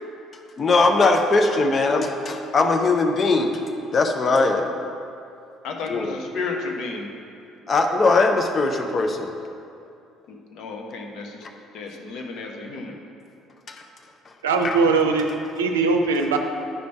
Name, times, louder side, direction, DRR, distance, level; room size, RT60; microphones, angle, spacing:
voice 1, 0.6-3.6 3.9-4.7 5.9-6.2 7.7-9.3 13.7-13.8 14.6-14.8, left 3 dB, 35° left, 4 dB, 0.7 m, -20 dB
voice 2, 5.6-7.1 10.3-11.5 11.7-13.0, left 4 dB, 55° left, 1 dB, 1.0 m, -32 dB
voice 3, 14.4-16.4, right 4 dB, 75° right, 4 dB, 0.5 m, -21 dB
9.4 x 5.2 x 4.4 m, 2.6 s
figure-of-eight pair, 50°, 0 cm